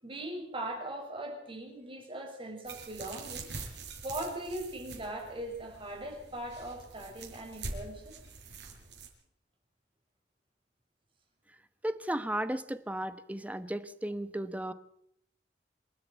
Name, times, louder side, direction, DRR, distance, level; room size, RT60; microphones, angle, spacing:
voice 1, 0.0-3.5 4.0-8.1, right 1 dB, 30° right, 2 dB, 6.5 m, -40 dB
sound 1, 2.6-9.1, right 3 dB, 75° right, 6.5 m, -45 dB
voice 2, 11.8-14.7, right 1 dB, 10° right, 12 dB, 1.1 m, -35 dB
27.5 x 10.5 x 9.2 m, 0.72 s
head